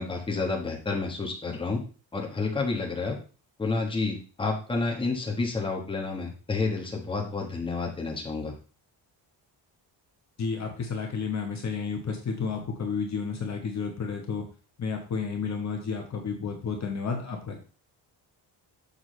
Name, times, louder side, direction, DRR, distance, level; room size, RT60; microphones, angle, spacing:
voice 1, 0.0-1.8 2.1-3.1 3.6-8.5, left 3 dB, 10° left, -1 dB, 1.3 m, -30 dB
voice 2, 10.4-14.5 14.8-17.6, left 5 dB, 40° left, 2 dB, 1.1 m, -31 dB
6.7 x 6.0 x 3.2 m, 0.37 s
cardioid pair, 175°, 42 cm